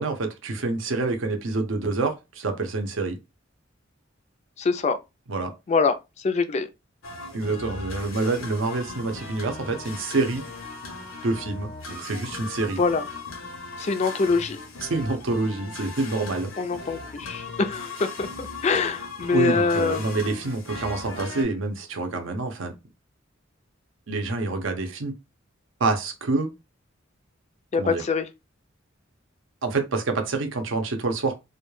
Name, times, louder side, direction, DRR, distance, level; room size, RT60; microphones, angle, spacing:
voice 1, 0.0-3.2 5.3-5.5 7.3-10.5 11.2-12.8 14.8-16.5 19.3-22.7 24.1-25.1 25.8-26.5 27.8-28.0 29.6-31.3, right 3 dB, 70° right, 0.6 m, -27 dB
voice 2, 4.6-5.0 5.7-6.7 12.8-13.1 13.8-14.6 16.6-20.1 27.7-28.3, left 4 dB, 35° left, 0.3 m, -24 dB
sound 1, 7.0-21.4, left 3 dB, 75° left, 0.7 m, -38 dB
2.2 x 2.1 x 3.1 m
head